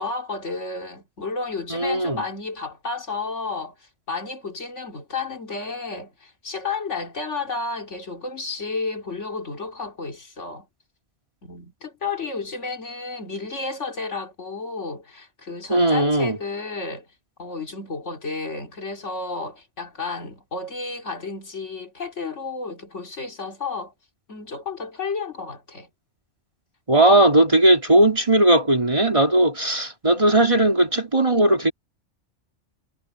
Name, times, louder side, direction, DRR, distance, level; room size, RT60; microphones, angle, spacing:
voice 1, 0.0-10.7 11.4-17.1 17.4-23.9 24.3-25.9 27.1-27.3, left 4 dB, 75° left, 3.0 m, -32 dB
voice 2, 1.7-2.2 15.7-16.4 26.9-31.7, right 1 dB, 25° right, 2.4 m, -18 dB
omnidirectional pair, 1.2 m